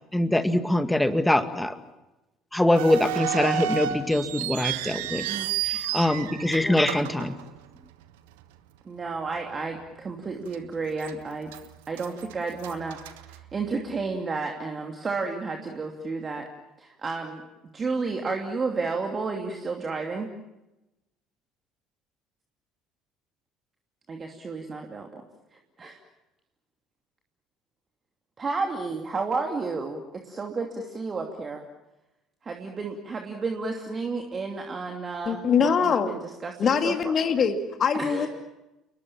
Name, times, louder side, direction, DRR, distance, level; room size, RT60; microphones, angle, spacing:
voice 1, 0.1-1.7 2.5-5.2 5.6-7.3, left 1 dB, 5° left, 10 dB, 2.1 m, -23 dB
sound 1, 2.7-8.0 8.3-8.4 9.1-9.4 9.8-9.9 10.5-11.1 11.5-13.9, right 12 dB, 70° right, 1.3 m, -32 dB
voice 2, 5.1-5.6 8.8-11.5 11.9-16.5 16.8-17.4 17.7-20.3 24.1-25.2 25.8-26.0 28.4-31.6 32.4-37.1 37.9-38.3, right 4 dB, 30° right, 3 dB, 2.8 m, -32 dB
voice 3, 35.3-36.1 36.6-38.3, left 6 dB, 40° left, 8 dB, 2.2 m, -23 dB
29.5 x 21.0 x 7.3 m, 0.99 s
figure-of-eight pair, 55°, 0 cm